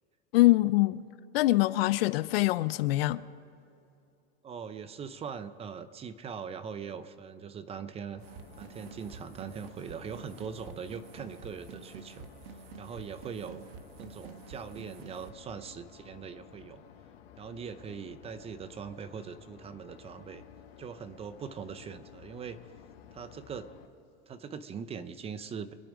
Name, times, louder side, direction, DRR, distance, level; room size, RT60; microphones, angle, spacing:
voice 1, 0.3-1.0 1.3-3.2, left 18 dB, 70° left, 0.6 m, -24 dB
voice 2, 4.4-8.2 8.5-12.3 12.8-13.7 14.0-16.8 17.4-20.4 20.8-22.6 23.1-23.8 24.3-25.7, right 6 dB, 20° right, 0.6 m, -41 dB
sound 1, 8.1-23.9, left 9 dB, 85° left, 1.8 m, -54 dB
sound 2, 8.2-15.3, right 6 dB, 70° right, 1.3 m, -49 dB
25.0 x 8.7 x 5.1 m
supercardioid pair, 135°, 31 cm